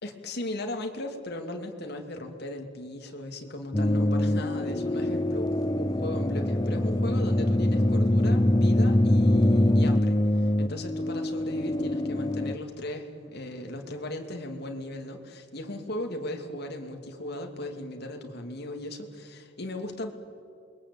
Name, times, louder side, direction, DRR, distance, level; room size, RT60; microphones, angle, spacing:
voice 1, 0.0-20.1, left 1 dB, 55° left, 4 dB, 2.7 m, -37 dB
sound 1, 3.7-12.6, left 1 dB, 20° left, 0.7 m, -24 dB
28.5 x 22.0 x 8.6 m, 2.4 s
head